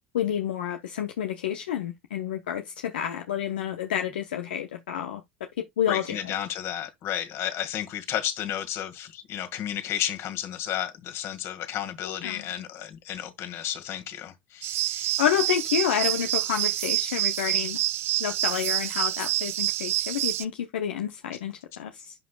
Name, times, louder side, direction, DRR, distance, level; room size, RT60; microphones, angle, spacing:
voice 1, 0.1-5.2 5.8-6.2 12.0-12.4 15.2-17.8 18.2-22.1, left 9 dB, 75° left, 0.8 m, -29 dB
voice 2, 5.9-15.2, left 11 dB, 55° left, 1.8 m, -32 dB
sound 1, 14.6-20.5, right 15 dB, 50° right, 0.4 m, -27 dB
10.5 x 5.1 x 2.3 m
hypercardioid pair, 70°, 6 cm